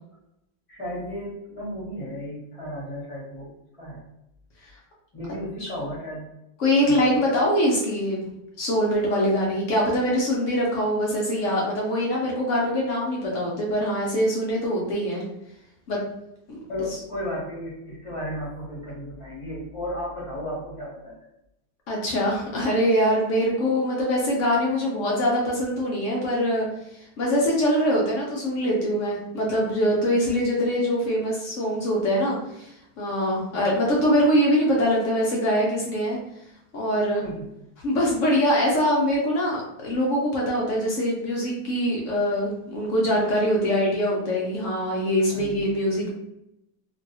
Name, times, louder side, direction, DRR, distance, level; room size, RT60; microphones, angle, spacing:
voice 1, 0.7-4.0 5.1-6.3 6.8-7.1 16.7-21.3 37.2-37.5 45.2-45.6, left 1 dB, 25° left, -6 dB, 0.7 m, -34 dB
voice 2, 6.6-8.3 8.6-15.2 15.9-16.0 16.5-16.6 21.9-26.7 27.2-32.7 33.0-36.2 36.7-37.2 37.8-46.1, equal, 65° left, -3 dB, 0.7 m, -23 dB
3.0 x 2.6 x 2.7 m, 0.83 s
omnidirectional pair, 2.1 m